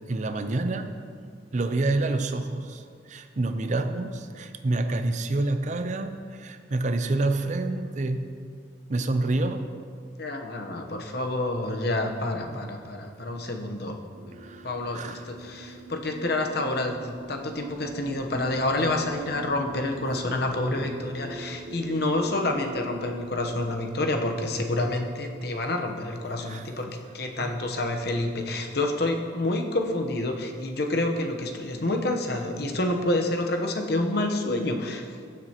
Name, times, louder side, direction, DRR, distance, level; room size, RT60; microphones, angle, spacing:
voice 1, 0.1-0.9 1.5-2.8 3.1-8.3 8.9-9.7 14.4-14.7 14.9-15.2 20.1-20.2 20.7-21.2 26.5-26.7 27.4-27.5, right 2 dB, 40° right, 8 dB, 0.5 m, -28 dB
voice 2, 10.2-14.0 14.6-26.9 27.1-35.1, left 2 dB, 60° left, 3 dB, 0.9 m, -28 dB
sound 1, 14.1-28.7, right 2 dB, 90° right, 0.7 m, -43 dB
16.0 x 7.6 x 2.9 m, 2.1 s
head